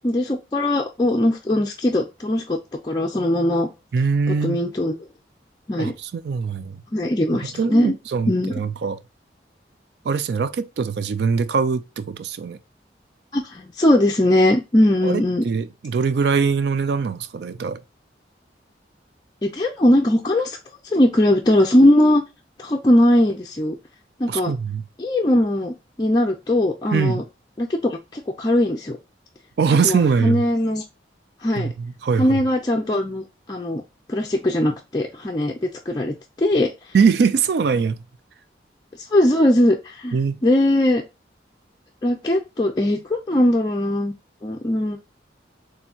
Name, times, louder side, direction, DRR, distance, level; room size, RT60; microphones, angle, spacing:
voice 1, 0.0-2.6 2.8-3.7 4.4-5.0 5.7-5.9 6.9-7.9 8.3-8.5 13.3-15.5 19.4-20.6 20.9-22.2 22.6-23.8 24.2-24.5 25.0-27.2 27.6-29.0 29.8-30.8 31.4-31.7 32.2-33.2 33.5-33.8 34.1-36.7 39.1-40.2 40.4-41.0 42.0-44.1 44.4-45.0, left 1 dB, 20° left, 0.4 m, -20 dB
voice 2, 3.9-4.6 5.8-6.8 7.4-9.0 10.1-12.6 15.0-17.8 24.3-24.8 26.9-27.2 29.6-30.4 31.6-32.4 36.9-38.0 40.1-40.4, right 5 dB, 65° right, 0.3 m, -22 dB
4.4 x 3.2 x 2.7 m
head